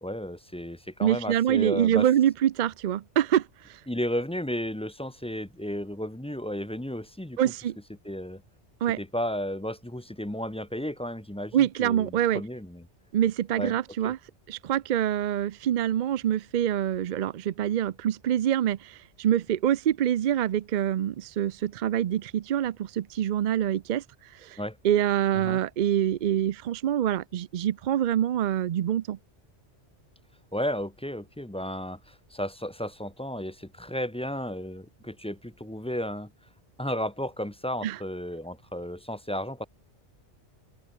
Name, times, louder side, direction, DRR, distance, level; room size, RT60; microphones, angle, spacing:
voice 1, 0.0-2.1 3.9-7.4 8.0-8.4 9.0-12.9 13.6-13.8 14.0-14.1 24.6-24.8 25.3-25.6 30.5-36.3 36.8-39.7, equal, 5° left, 0.8 m, -33 dB
voice 2, 1.0-3.8 7.4-7.8 8.8-9.0 11.5-12.4 13.1-14.2 14.5-24.0 24.3-24.6 24.8-29.2 37.8-38.0, right 10 dB, 60° right, 0.5 m, -25 dB
open air
omnidirectional pair, 1.2 m